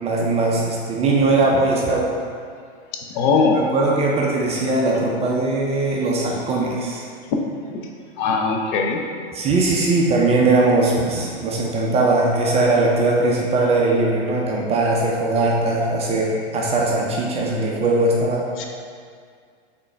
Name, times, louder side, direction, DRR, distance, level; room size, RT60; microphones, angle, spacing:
voice 1, 0.0-2.1 3.5-7.0 9.3-18.5, right 2 dB, 20° right, -2 dB, 0.4 m, -20 dB
voice 2, 3.1-3.7 7.3-7.4 8.2-9.0 18.6-18.7, left 4 dB, 45° left, 2 dB, 0.6 m, -19 dB
3.7 x 3.7 x 3.3 m, 2.1 s
hypercardioid pair, 105°, 32 cm